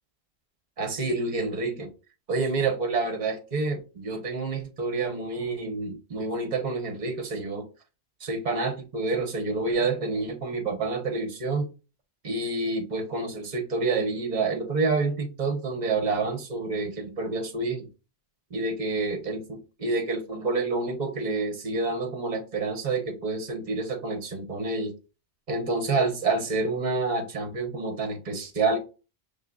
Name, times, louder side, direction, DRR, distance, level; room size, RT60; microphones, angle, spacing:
voice 1, 0.8-1.9 2.3-7.7 8.2-11.7 12.2-17.9 18.5-24.9 25.5-28.8, right 3 dB, 45° right, 1.1 m, -28 dB
5.5 x 3.3 x 2.3 m
omnidirectional pair, 1.1 m